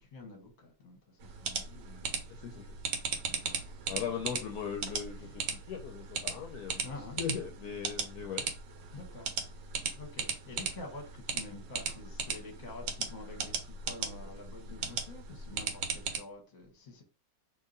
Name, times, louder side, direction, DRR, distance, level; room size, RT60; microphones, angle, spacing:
voice 1, 0.0-2.6 3.1-4.2 5.1-5.7 6.3-6.4 6.8-7.2 8.9-17.0, left 2 dB, 30° left, 1.0 m, -49 dB
sound 1, 1.2-16.2, right 6 dB, 80° right, 1.3 m, -38 dB
voice 2, 2.3-2.8 3.9-5.4 5.7-6.8 7.2-8.4, left 7 dB, 70° left, 1.0 m, -38 dB
2.8 x 2.6 x 3.8 m
omnidirectional pair, 1.9 m